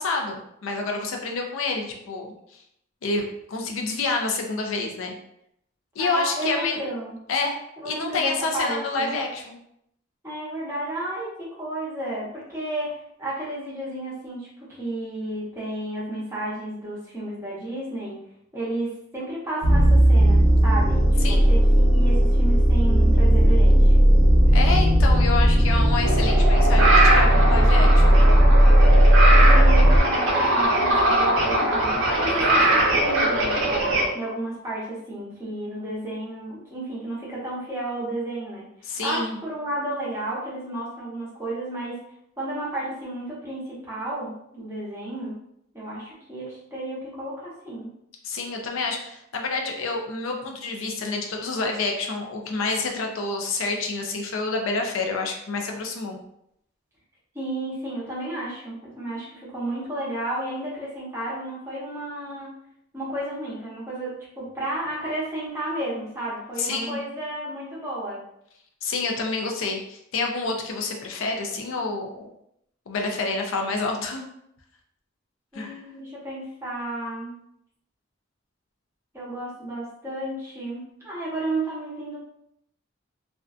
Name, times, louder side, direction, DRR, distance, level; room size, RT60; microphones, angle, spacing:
voice 1, 0.0-2.3 3.0-5.1 6.0-6.8 7.3-7.6 7.8-9.6 21.2-21.5 24.5-28.2 38.8-39.4 48.2-56.2 66.6-67.0 68.8-72.1 72.9-74.3 75.5-75.8, left 3 dB, 85° left, 2 dB, 0.5 m, -28 dB
voice 2, 6.0-7.1 7.8-9.1 10.2-18.2 18.5-23.9 29.3-33.8 34.1-38.6 39.0-42.0 42.4-45.3 45.7-47.9 57.3-62.6 62.9-68.2 75.5-77.3 79.1-82.2, right 1 dB, 15° right, -7 dB, 0.8 m, -32 dB
sound 1, 19.6-30.0, equal, 30° right, 0.5 m, -16 dB
sound 2, 26.0-34.1, right 1 dB, 80° right, 0.7 m, -21 dB
2.5 x 2.2 x 2.4 m, 0.75 s
head